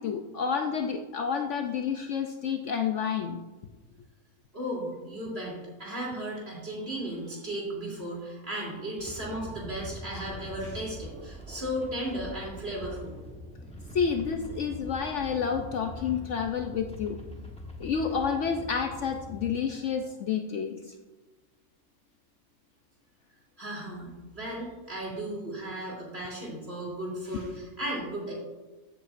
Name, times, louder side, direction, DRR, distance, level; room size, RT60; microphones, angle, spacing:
voice 1, 0.0-3.4 13.9-17.2 17.8-20.8, left 6 dB, 65° left, 5 dB, 0.8 m, -29 dB
voice 2, 4.5-13.2 23.6-28.3, right 1 dB, 45° right, -4 dB, 3.4 m, -35 dB
sound 1, 9.0-19.6, left 1 dB, 5° left, 0.9 m, -43 dB
15.0 x 7.9 x 2.5 m, 1.2 s
omnidirectional pair, 1.5 m